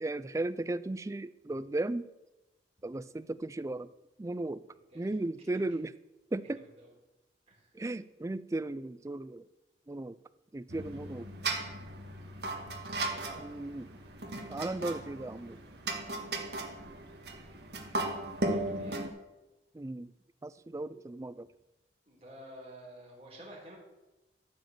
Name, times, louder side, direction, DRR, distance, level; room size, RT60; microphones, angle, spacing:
voice 1, 0.0-2.1 2.8-3.9 4.2-4.6 4.9-5.9 6.3-6.6 7.7-9.5 9.9-10.2 10.5-11.3 13.4-14.0 14.5-15.6 18.9-19.1 19.7-20.1 20.4-21.5, right 2 dB, 15° right, 15 dB, 0.3 m, -36 dB
voice 2, 4.7-5.2 6.6-6.9 7.5-7.7 13.0-13.5 18.4-19.0 22.1-23.8, right 1 dB, 35° right, -3 dB, 3.8 m, -51 dB
sound 1, 10.7-19.1, right 2 dB, 65° right, 1.6 m, -37 dB
14.5 x 5.0 x 7.6 m, 1.0 s
head